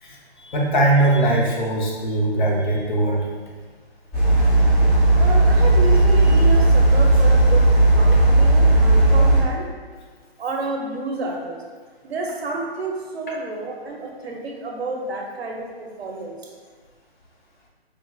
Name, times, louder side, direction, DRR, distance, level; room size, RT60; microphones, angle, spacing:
voice 1, 0.0-3.3, right 2 dB, 50° left, -2 dB, 0.7 m, -20 dB
sound 1, 4.1-9.4, right 2 dB, 5° left, 0.6 m, -15 dB
voice 2, 5.2-7.7 8.0-9.6 10.4-11.6 12.0-16.4, right 3 dB, 75° right, 0 dB, 0.7 m, -30 dB
4.5 x 2.5 x 2.3 m, 1.5 s
hypercardioid pair, 150°, 32 cm